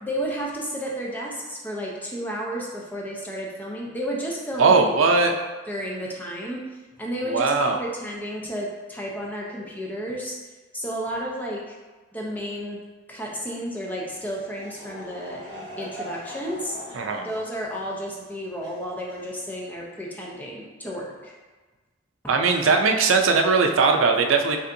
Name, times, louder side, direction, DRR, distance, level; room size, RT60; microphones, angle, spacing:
voice 1, 0.0-5.4 5.7-6.6 7.0-10.3 10.7-11.8 12.1-15.4 15.8-16.8 17.2-21.3, equal, 10° left, -3 dB, 0.6 m, -32 dB
voice 2, 4.6-5.4 7.3-7.8 16.9-17.3 22.3-24.6, right 4 dB, 85° right, 4 dB, 0.5 m, -19 dB
Laughter / Crowd, 14.0-19.8, equal, 60° right, 1.1 m, -42 dB
5.5 x 3.4 x 2.6 m, 1.3 s
head